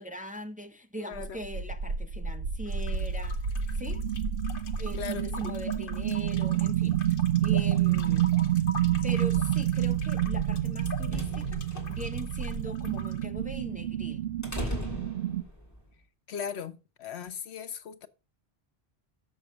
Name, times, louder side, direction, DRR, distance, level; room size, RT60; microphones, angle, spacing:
voice 1, 0.0-3.4 3.8-4.0 4.8-7.0 7.4-8.4 9.0-14.3 14.6-14.8, left 1 dB, 10° right, 0.7 m, -41 dB
voice 2, 1.0-1.4 5.0-5.5 16.3-18.1, left 7 dB, 80° left, 1.1 m, -38 dB
sound 1, 1.1-15.4, right 10 dB, 75° right, 1.0 m, -29 dB
sound 2, 2.7-13.3, left 4 dB, 55° left, 1.1 m, -45 dB
sound 3, 10.6-15.8, left 1 dB, 15° left, 2.9 m, -39 dB
6.9 x 6.6 x 6.3 m
omnidirectional pair, 1.1 m